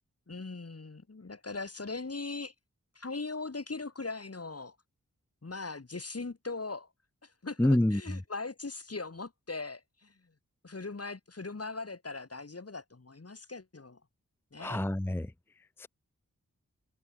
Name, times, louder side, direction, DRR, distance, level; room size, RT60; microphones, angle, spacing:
voice 1, 0.3-2.5 2.9-4.8 5.4-6.9 7.2-10.3 10.6-14.0 14.5-14.8, left 3 dB, 50° left, 4.2 m, -40 dB
voice 2, 7.6-8.2 14.6-15.9, left 1 dB, 5° left, 0.7 m, -29 dB
cardioid pair, 40°, 32 cm